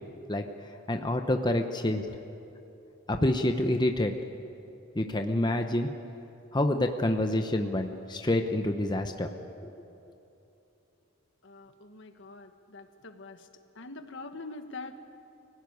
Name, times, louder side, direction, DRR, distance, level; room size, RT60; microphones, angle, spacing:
voice 1, 0.9-2.1 3.1-4.1 4.9-5.9 6.5-9.3 9.6-9.7, left 1 dB, 20° left, 5 dB, 0.9 m, -27 dB
voice 2, 11.4-13.4 13.8-15.0, left 3 dB, 60° left, 8 dB, 1.4 m, -44 dB
25.0 x 17.0 x 9.5 m, 2.9 s
head